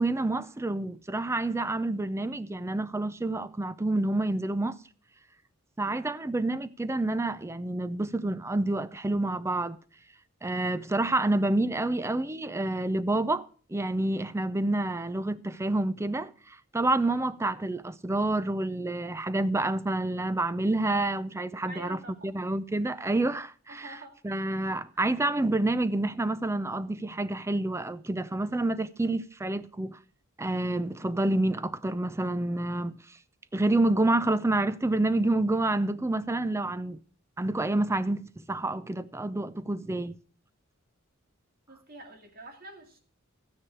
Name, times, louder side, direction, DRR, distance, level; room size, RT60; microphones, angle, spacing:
voice 1, 0.0-4.8 5.8-9.8 10.4-23.9 24.2-30.0 30.4-33.0 33.5-37.0 37.4-40.2, right 2 dB, 15° right, 0.5 m, -28 dB
voice 2, 21.6-22.1 23.7-24.1 41.7-43.0, right 1 dB, 45° right, 2.4 m, -46 dB
13.0 x 9.9 x 4.7 m
head